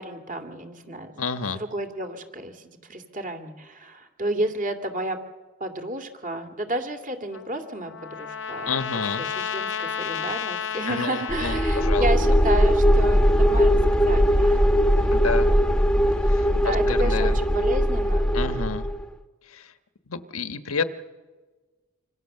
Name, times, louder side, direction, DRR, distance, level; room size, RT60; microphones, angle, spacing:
voice 1, 0.0-1.1 1.5-5.2 5.6-15.4 16.5-18.7, right 1 dB, 40° right, 7 dB, 2.5 m, -32 dB
voice 2, 1.2-1.6 8.7-9.3 10.9-12.1 15.1-15.5 16.2-17.4 18.3-18.9 19.5-19.7 20.1-20.9, left 5 dB, 85° left, 9 dB, 1.3 m, -30 dB
Trumpet, 7.3-12.0, left 7 dB, 60° left, 0.8 m, -32 dB
sound 1, 11.3-19.1, equal, 5° left, 1.1 m, -20 dB
26.5 x 26.0 x 6.8 m, 1.3 s
head